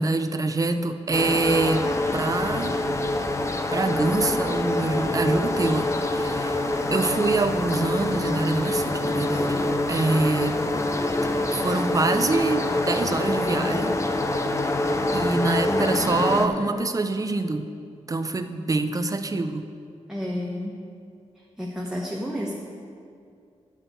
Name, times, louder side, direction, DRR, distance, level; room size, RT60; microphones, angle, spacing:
voice 1, 0.0-1.9 2.1-2.8 3.7-6.6 6.9-10.6 11.5-14.0 15.1-17.7 18.1-19.7, right 3 dB, 30° right, 8 dB, 0.5 m, -25 dB
sound 1, 1.1-16.5, left 2 dB, 25° left, 0.6 m, -25 dB
voice 2, 15.7-16.7 20.1-20.8 21.3-22.5, equal, 5° right, -3 dB, 0.9 m, -31 dB
9.9 x 5.9 x 7.9 m, 2.4 s
wide cardioid pair, 140°, 12 cm